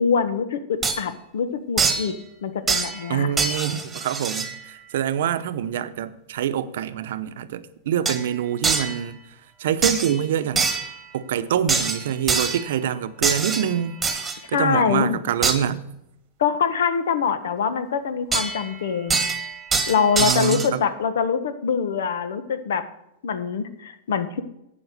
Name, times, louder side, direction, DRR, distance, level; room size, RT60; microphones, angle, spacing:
voice 1, 0.0-2.1 2.4-3.3 14.5-15.2 16.4-19.3 19.9-22.8 23.2-24.4, left 6 dB, 80° left, 1.2 m, -24 dB
sound 1, 0.8-1.0 1.8-2.1 2.7-3.1 3.4-4.6 8.0-8.2 8.6-9.0 9.8-10.2 10.5-11.0 11.7-12.7 13.2-14.4 15.4-15.6 18.3-18.7 19.1-20.7, right 4 dB, 15° right, 1.5 m, -24 dB
voice 2, 3.1-9.2 9.6-10.7 11.1-14.0 14.5-15.8 20.2-20.8, right 9 dB, 75° right, 0.8 m, -25 dB
8.8 x 7.3 x 6.6 m
hypercardioid pair, 130°, 0 cm